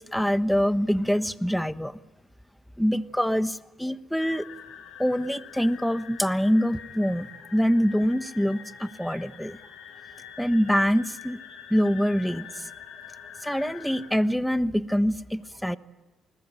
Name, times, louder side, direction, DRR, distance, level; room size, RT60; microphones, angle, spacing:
voice 1, 0.0-1.9 2.8-4.4 5.0-9.6 10.4-11.4 11.7-12.5 13.4-15.8, equal, ahead, 12 dB, 1.3 m, -25 dB
sound 1, 4.2-14.1, left 8 dB, 85° left, 5.9 m, -45 dB
29.0 x 20.5 x 9.0 m, 1.1 s
supercardioid pair, 70°, 0 cm